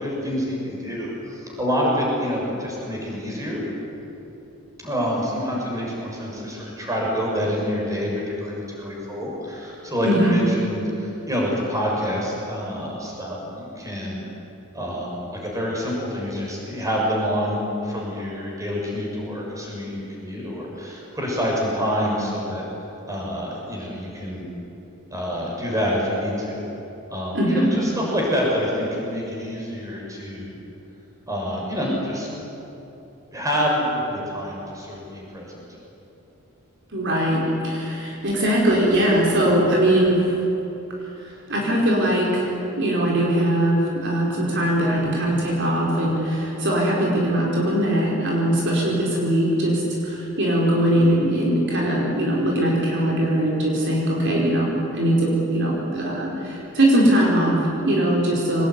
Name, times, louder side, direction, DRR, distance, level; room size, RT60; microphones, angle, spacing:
voice 1, 0.0-3.6 4.8-14.2 14.7-22.6 23.1-24.5 25.1-26.6 27.1-30.6 31.3-32.3 33.3-35.5 51.0-51.2, equal, 15° right, -3 dB, 6.7 m, -27 dB
voice 2, 10.0-10.4 27.3-27.7 36.9-40.3 41.2-58.7, right 1 dB, 55° right, -3 dB, 4.8 m, -21 dB
24.0 x 20.0 x 9.7 m, 3.0 s
head